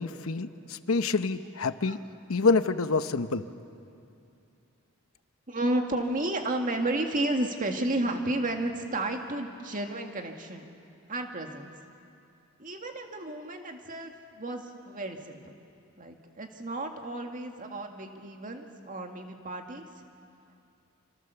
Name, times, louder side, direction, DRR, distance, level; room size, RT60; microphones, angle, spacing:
voice 1, 0.0-2.0 2.3-3.5, left 4 dB, 70° left, 11 dB, 0.9 m, -27 dB
voice 2, 5.5-10.7 11.1-11.7 12.6-15.5 16.0-20.0, right 1 dB, 40° right, 4 dB, 2.0 m, -32 dB
27.5 x 25.5 x 7.0 m, 2.5 s
head